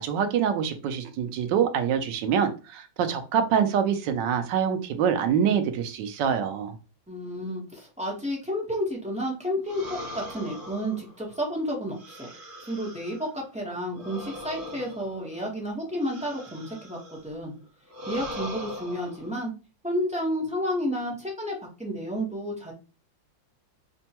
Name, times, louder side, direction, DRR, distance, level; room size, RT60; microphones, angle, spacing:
voice 1, 0.0-6.7, right 8 dB, 75° right, 1.2 m, -25 dB
voice 2, 7.1-12.3 12.6-17.5 18.1-19.5 19.8-22.7, equal, 5° right, 0.5 m, -31 dB
sound 1, 9.7-13.3 13.9-17.3 17.9-19.3, left 1 dB, 60° right, 1.3 m, -40 dB
5.2 x 2.2 x 2.8 m
omnidirectional pair, 2.0 m